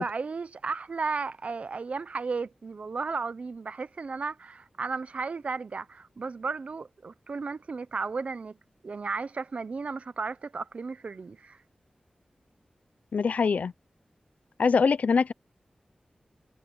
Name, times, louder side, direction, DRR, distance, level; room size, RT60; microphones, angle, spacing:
voice 1, 0.0-8.6 8.8-11.6, right 4 dB, 60° right, 0.8 m, -34 dB
voice 2, 13.1-13.7 14.6-15.3, left 5 dB, 85° left, 0.6 m, -23 dB
wide cardioid pair, 105°, 2 cm